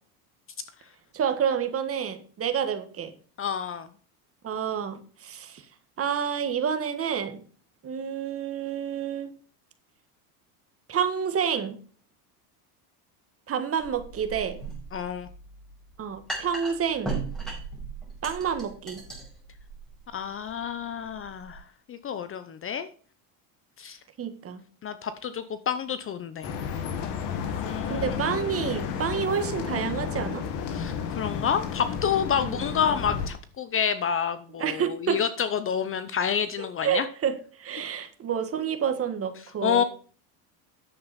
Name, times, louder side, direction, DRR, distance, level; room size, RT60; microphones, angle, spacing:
voice 1, 1.1-3.1 4.4-5.6 6.0-7.4 7.8-9.3 10.9-11.8 13.5-14.6 16.0-17.2 18.2-19.0 24.2-24.6 27.8-30.5 32.4-32.6 34.6-35.2 36.8-39.8, right 7 dB, 30° right, 8 dB, 1.6 m, -29 dB
voice 2, 3.4-3.9 14.9-15.3 20.1-21.6 21.9-22.9 23.8-24.0 24.8-26.5 27.5-28.2 30.7-37.1 39.6-39.8, left 7 dB, 30° left, 12 dB, 0.7 m, -29 dB
sound 1, 13.8-21.6, right 3 dB, ahead, 5.3 m, -38 dB
sound 2, 26.4-33.3, left 7 dB, 60° left, 2.1 m, -32 dB
10.0 x 7.7 x 4.2 m, 0.42 s
supercardioid pair, 120°, 45 cm